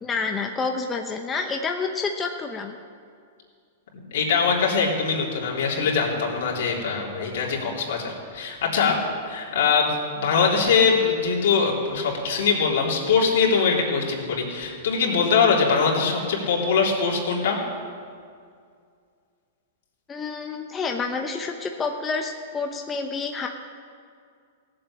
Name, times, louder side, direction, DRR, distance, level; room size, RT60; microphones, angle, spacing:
voice 1, 0.0-2.8 20.1-23.5, left 4 dB, 15° left, 2 dB, 0.9 m, -28 dB
voice 2, 3.9-9.0 9.3-17.6, left 5 dB, 70° left, -2 dB, 3.5 m, -22 dB
16.5 x 7.8 x 8.6 m, 2.2 s
hypercardioid pair, 140°, 0 cm